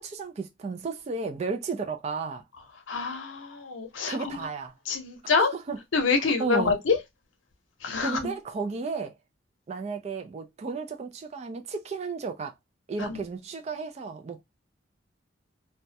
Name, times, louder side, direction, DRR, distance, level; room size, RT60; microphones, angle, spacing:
voice 1, 0.0-2.4 4.1-4.7 5.4-5.8 6.4-6.7 8.0-9.1 9.7-12.5 12.9-14.4, right 4 dB, 35° right, 0.3 m, -33 dB
voice 2, 2.9-4.2 4.9-5.5 5.9-7.0 7.8-8.2 13.1-13.2, left 4 dB, 90° left, 0.6 m, -26 dB
2.2 x 2.1 x 2.6 m
head